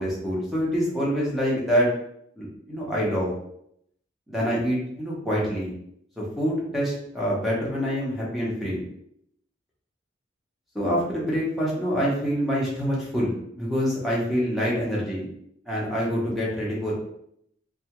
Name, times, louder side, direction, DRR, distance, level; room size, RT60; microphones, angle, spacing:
voice 1, 0.0-1.9 2.4-3.3 4.3-5.7 6.2-8.8 10.7-15.3 15.7-16.9, equal, ahead, -6 dB, 0.8 m, -26 dB
2.7 x 2.3 x 2.9 m, 0.72 s
head